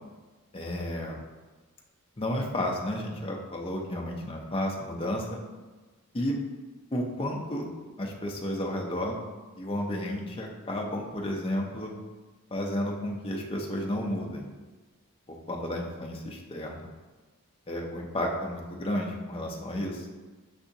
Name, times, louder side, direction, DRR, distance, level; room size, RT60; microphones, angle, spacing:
voice 1, 0.5-1.2 2.2-5.4 6.1-6.4 6.9-7.7 8.0-9.1 9.6-11.9 12.5-14.5 15.3-16.9 17.7-20.1, left 1 dB, 25° left, 0 dB, 0.5 m, -32 dB
6.7 x 2.7 x 2.7 m, 1.3 s
head